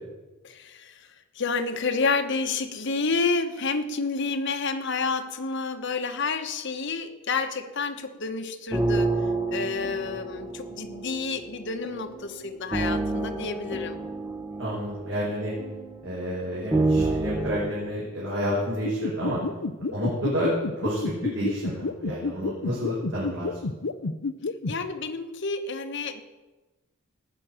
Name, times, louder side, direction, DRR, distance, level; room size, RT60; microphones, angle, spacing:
voice 1, 0.4-14.0 24.7-26.2, left 4 dB, 60° left, 7 dB, 1.3 m, -29 dB
sound 1, 8.7-17.7, right 2 dB, 15° right, 1.1 m, -29 dB
voice 2, 14.6-15.5 16.0-19.4 19.9-20.5 20.8-23.5, equal, 60° right, -6 dB, 5.5 m, -29 dB
sound 2, 18.8-24.7, left 3 dB, 80° left, 0.8 m, -29 dB
19.0 x 6.4 x 9.0 m, 1.2 s
head